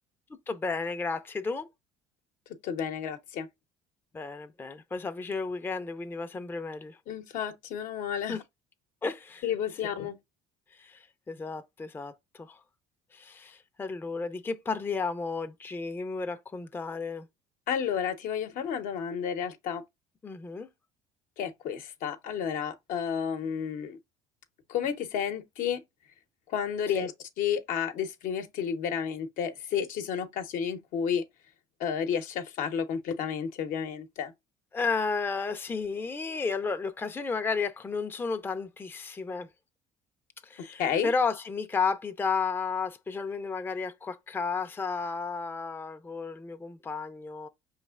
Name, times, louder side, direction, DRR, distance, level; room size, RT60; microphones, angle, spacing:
voice 1, 0.5-1.7 4.1-7.0 8.3-8.4 9.0-9.4 10.8-12.6 13.1-17.3 20.2-20.7 26.9-27.1 34.7-39.5 40.4-47.5, left 4 dB, 15° left, 0.4 m, -33 dB
voice 2, 2.6-3.5 7.1-8.4 9.4-10.2 17.7-19.8 21.4-24.0 24.7-25.8 26.5-27.1 27.4-31.2 31.8-34.3 40.6-41.1, left 8 dB, 70° left, 0.7 m, -31 dB
4.9 x 3.2 x 2.3 m
supercardioid pair, 85°, 14 cm